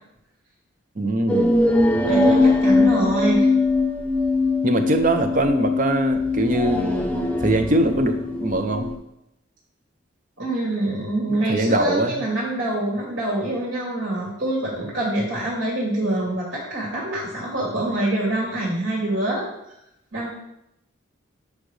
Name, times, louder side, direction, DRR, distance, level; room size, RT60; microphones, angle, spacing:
voice 1, 1.0-1.6 4.6-6.9 7.4-8.9 11.3-12.2, right 1 dB, 40° right, 6 dB, 0.7 m, -22 dB
sound 1, 1.3-9.0, left 2 dB, 5° left, 0.6 m, -21 dB
voice 2, 2.0-3.5 10.4-19.5 20.1-20.3, right 1 dB, 75° right, -4 dB, 2.5 m, -25 dB
8.4 x 6.1 x 3.3 m, 0.82 s
head